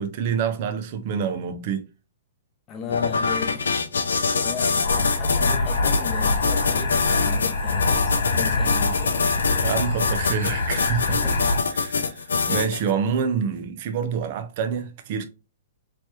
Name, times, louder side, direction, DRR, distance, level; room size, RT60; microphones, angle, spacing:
voice 1, 0.0-1.9 9.6-11.2 11.8-15.2, right 7 dB, 50° right, 0.6 m, -27 dB
voice 2, 2.7-9.3 11.1-11.6, left 6 dB, 30° left, 0.6 m, -36 dB
sound 1, 2.9-12.9, left 5 dB, 85° left, 0.5 m, -24 dB
sound 2, 4.8-11.6, left 3 dB, 70° left, 1.1 m, -25 dB
3.1 x 3.1 x 2.9 m
hypercardioid pair, 125°, 0 cm